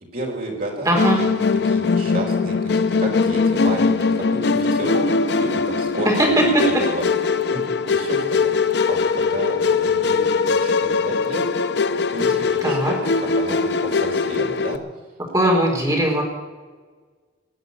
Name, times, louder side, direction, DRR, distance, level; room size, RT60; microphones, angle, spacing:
voice 1, 0.1-1.3 1.6-5.0 5.4-11.4 12.1-13.0 13.3-14.8, right 1 dB, 45° right, 0 dB, 4.4 m, -31 dB
voice 2, 0.9-1.2 12.6-12.9 15.3-16.2, right 1 dB, 20° right, -2 dB, 4.4 m, -19 dB
Musical instrument, 1.0-14.8, left 4 dB, 60° left, 0.6 m, -21 dB
20.0 x 7.8 x 8.6 m, 1.4 s
head